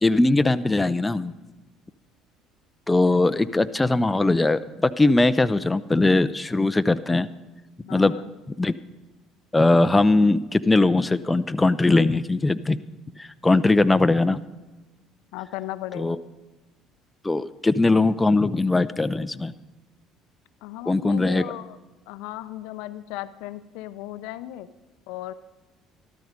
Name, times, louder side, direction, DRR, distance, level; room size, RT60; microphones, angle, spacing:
voice 1, 0.0-1.3 2.9-7.3 7.9-8.1 8.5-8.7 9.5-12.8 13.2-14.4 15.9-16.2 17.2-19.5 20.9-21.4, left 2 dB, 15° left, 12 dB, 0.6 m, -20 dB
voice 2, 7.8-8.3 15.3-16.2 20.6-21.8 22.1-24.7 25.1-25.3, left 14 dB, 75° left, 12 dB, 0.6 m, -36 dB
13.5 x 12.5 x 5.1 m, 1.2 s
hypercardioid pair, 65°, 0 cm